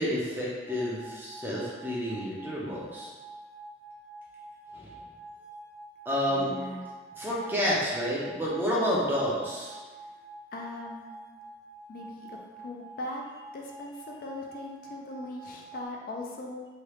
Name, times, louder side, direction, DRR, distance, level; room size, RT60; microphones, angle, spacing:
voice 1, 0.0-3.1 4.7-4.9 6.1-6.5 7.2-9.8, equal, 10° right, -6 dB, 0.5 m, -29 dB
sound 1, 0.7-15.8, right 2 dB, 80° left, 0.8 m, -47 dB
voice 2, 6.3-6.9 10.5-11.1 11.9-13.2 13.5-16.7, left 1 dB, 50° left, -1 dB, 0.3 m, -40 dB
3.2 x 2.3 x 3.0 m, 1.3 s
head